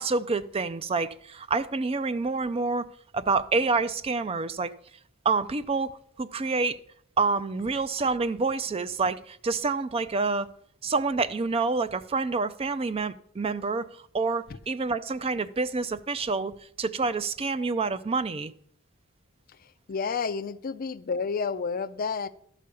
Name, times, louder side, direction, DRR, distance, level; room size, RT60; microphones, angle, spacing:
voice 1, 0.0-2.9 3.1-4.7 5.2-5.9 6.2-6.8 7.2-10.5 10.8-13.9 14.1-16.5 16.8-18.5, right 4 dB, 30° right, 0.4 m, -27 dB
voice 2, 19.9-22.3, left 5 dB, 45° left, 0.5 m, -30 dB
12.0 x 5.0 x 6.8 m
head